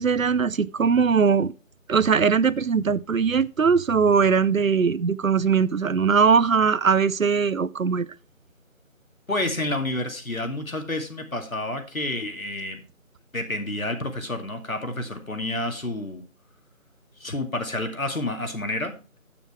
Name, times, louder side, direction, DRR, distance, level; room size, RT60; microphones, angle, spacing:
voice 1, 0.0-1.5 1.9-8.1, right 6 dB, 75° right, 0.6 m, -20 dB
voice 2, 9.3-12.8 13.3-16.2 17.2-19.2, left 1 dB, 75° left, 2.4 m, -29 dB
9.1 x 7.2 x 4.5 m
figure-of-eight pair, 165°, 41 cm